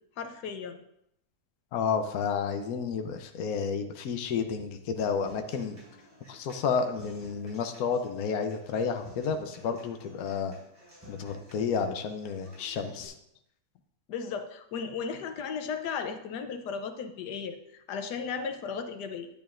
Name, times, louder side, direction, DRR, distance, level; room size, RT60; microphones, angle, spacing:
voice 1, 0.2-0.8 14.1-19.3, left 6 dB, 90° left, 7 dB, 1.4 m, -35 dB
voice 2, 1.7-5.8 6.3-10.5 11.1-13.2, left 6 dB, 65° left, 7 dB, 1.2 m, -31 dB
Human voice / Acoustic guitar, 5.1-13.1, equal, 10° right, 3.9 m, -54 dB
10.5 x 9.3 x 2.5 m, 0.75 s
omnidirectional pair, 1.7 m